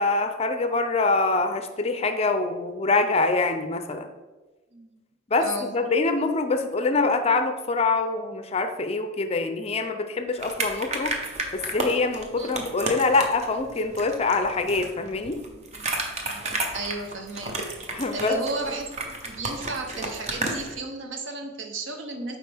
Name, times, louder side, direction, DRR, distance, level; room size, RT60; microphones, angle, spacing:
voice 1, 0.0-4.1 5.3-11.2 11.5-15.4 17.9-18.4, left 3 dB, 30° left, 8 dB, 0.4 m, -25 dB
voice 2, 5.4-5.8 12.4-12.5 16.1-16.4 16.7-17.6 18.1-22.4, right 3 dB, 65° right, 4 dB, 0.9 m, -34 dB
sound 1, 10.4-20.8, right 2 dB, 35° right, 0.8 m, -33 dB
7.9 x 4.8 x 3.4 m, 1.2 s
head